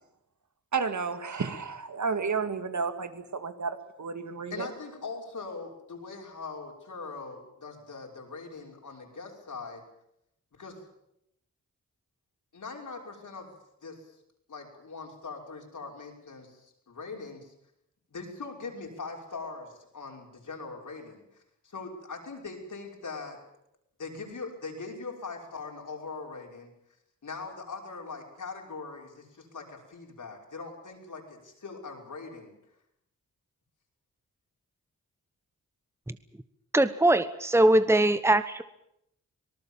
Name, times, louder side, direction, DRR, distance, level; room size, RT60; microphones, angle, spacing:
voice 1, 0.7-4.7, right 5 dB, 60° right, 9 dB, 2.3 m, -32 dB
voice 2, 4.5-9.8 10.5-10.8 12.5-13.5 13.8-14.2 14.5-17.5 18.1-23.4 24.0-26.7 27.2-32.5, left 4 dB, 70° left, 1 dB, 5.9 m, -41 dB
voice 3, 36.7-38.6, right 1 dB, 10° right, 12 dB, 1.1 m, -22 dB
25.0 x 19.0 x 7.3 m, 0.78 s
cardioid pair, 60°, 32 cm